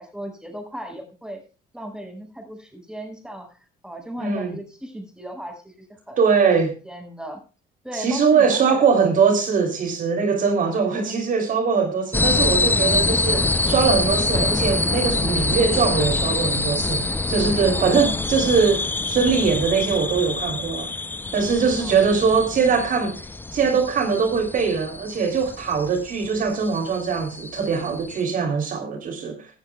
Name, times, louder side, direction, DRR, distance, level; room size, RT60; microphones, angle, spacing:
voice 1, 0.0-1.4 1.7-3.6 3.8-6.5 6.8-7.4 7.8-8.9 10.9-11.2 17.7-18.2 21.8-22.2, right 1 dB, 5° right, 5.5 m, -36 dB
voice 2, 4.2-4.6 6.2-6.7 7.9-20.9 21.3-23.2 23.5-29.5, right 5 dB, 50° right, 3.2 m, -21 dB
sound 1, 12.1-28.2, left 2 dB, 10° left, 0.5 m, -25 dB
17.5 x 13.0 x 2.3 m
cardioid pair, 110°, 17 cm